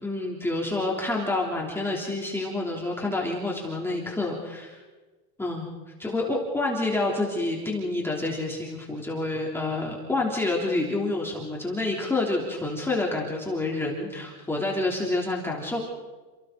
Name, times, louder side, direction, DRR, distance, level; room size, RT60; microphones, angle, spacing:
voice 1, 0.0-4.8 5.4-5.7 6.0-15.8, left 2 dB, 5° left, -2 dB, 3.2 m, -28 dB
29.5 x 28.5 x 4.0 m, 1.3 s
supercardioid pair, 160°, 49 cm